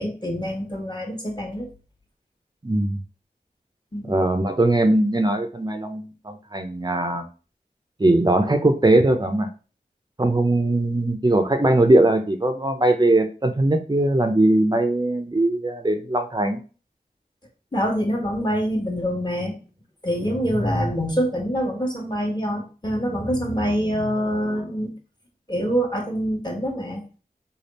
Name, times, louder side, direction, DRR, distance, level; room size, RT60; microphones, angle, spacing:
voice 1, 0.0-1.7 3.9-4.1 17.7-19.6 20.0-24.9 25.5-27.0, equal, 25° left, 0 dB, 1.3 m, -25 dB
voice 2, 2.6-3.0 4.1-7.3 8.0-9.5 10.2-16.6, right 1 dB, 25° right, 6 dB, 0.5 m, -20 dB
3.4 x 2.3 x 4.0 m, 0.35 s
wide cardioid pair, 50°, 16 cm